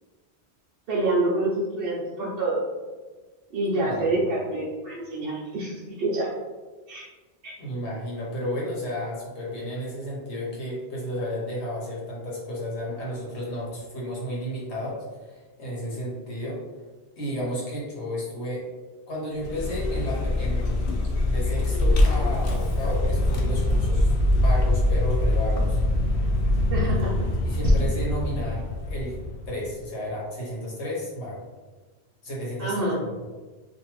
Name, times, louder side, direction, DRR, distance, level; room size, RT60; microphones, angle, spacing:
voice 1, 0.9-2.6 3.5-6.4 6.9-7.1 7.4-7.5 26.7-27.1 32.6-33.0, right 2 dB, 65° right, -6 dB, 0.7 m, -27 dB
voice 2, 7.6-16.6 17.2-18.6 19.1-20.9 21.2-25.8 26.8-29.2 29.5-31.4 32.2-32.8, equal, 90° left, -4 dB, 1.2 m, -32 dB
Vehicle, 19.4-29.7, left 1 dB, 65° left, 0.7 m, -23 dB
2.6 x 2.5 x 2.9 m, 1.3 s
omnidirectional pair, 1.1 m